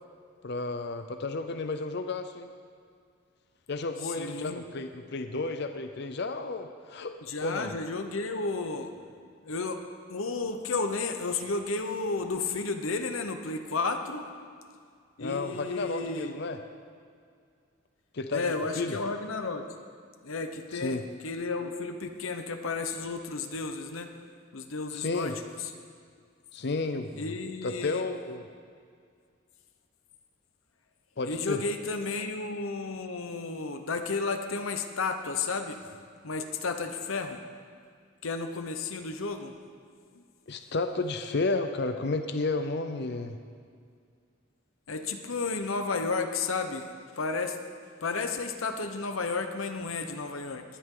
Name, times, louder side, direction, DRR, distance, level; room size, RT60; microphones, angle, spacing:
voice 1, 0.4-2.5 3.7-7.7 15.2-16.6 18.1-19.0 20.7-21.0 24.9-25.4 26.5-27.3 27.6-28.4 31.2-31.6 40.5-43.4, left 3 dB, 55° left, 7 dB, 0.6 m, -32 dB
voice 2, 4.0-4.6 7.2-8.9 9.4-9.8 10.1-14.3 15.2-16.4 18.3-19.8 20.2-21.0 21.2-24.1 24.5-25.3 27.2-28.0 31.2-35.8 36.2-37.4 38.2-39.6 40.1-40.2 44.9-46.9 47.2-47.6 48.0-50.6, left 4 dB, 75° left, 6 dB, 0.9 m, -32 dB
20.0 x 11.0 x 3.9 m, 2.2 s
head